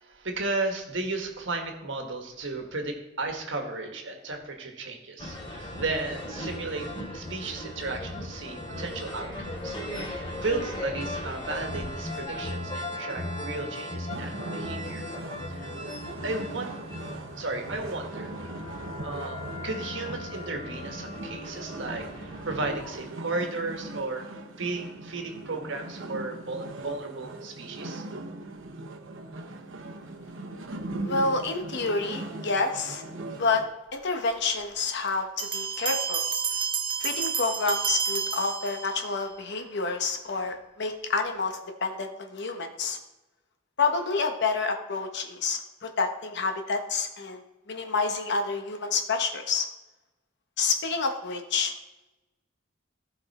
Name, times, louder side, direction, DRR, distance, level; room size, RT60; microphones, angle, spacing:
voice 1, 0.0-9.8 10.0-15.1 15.5-15.7 16.2-16.8 17.3-18.3 19.0-24.3 24.6-28.0, right 3 dB, 70° right, 3 dB, 1.5 m, -34 dB
sound 1, 5.2-23.0, left 1 dB, 30° left, 2.4 m, -37 dB
sound 2, 14.1-33.6, right 2 dB, 90° right, 1.1 m, -39 dB
voice 2, 31.0-33.0 33.4-33.6 33.9-36.3 37.0-43.0 43.8-49.7 50.6-51.7, left 4 dB, 60° left, 5 dB, 1.0 m, -28 dB
Bell, 35.4-39.2, right 7 dB, 25° right, 0.8 m, -30 dB
15.5 x 5.3 x 4.2 m, 1.0 s
head